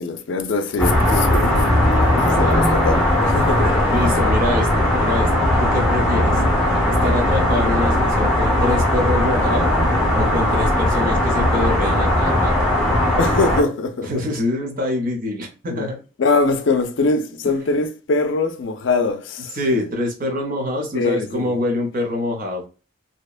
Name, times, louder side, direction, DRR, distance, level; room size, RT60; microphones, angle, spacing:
voice 1, 0.0-3.8 13.2-14.1 15.7-15.9 16.2-19.6 20.9-21.6, left 3 dB, 75° left, 0.4 m, -22 dB
sound 1, 0.8-13.6, left 1 dB, ahead, 0.9 m, -18 dB
voice 2, 2.1-2.7 3.9-6.4 7.0-9.7 10.1-12.5 14.0-16.0 17.4-17.5 19.5-22.6, left 1 dB, 45° right, 0.8 m, -25 dB
2.8 x 2.1 x 2.3 m
head